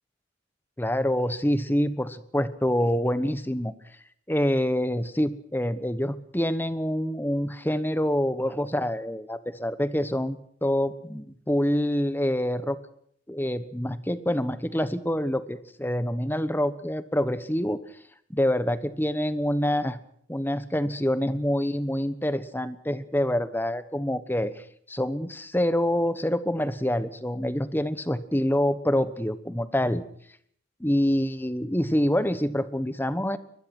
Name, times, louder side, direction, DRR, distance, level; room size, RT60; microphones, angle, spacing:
voice 1, 0.8-3.7 4.3-12.8 13.3-17.8 18.3-20.0 20.3-30.0 30.8-33.4, equal, 10° left, 13 dB, 1.1 m, -26 dB
23.0 x 20.0 x 6.1 m, 0.64 s
head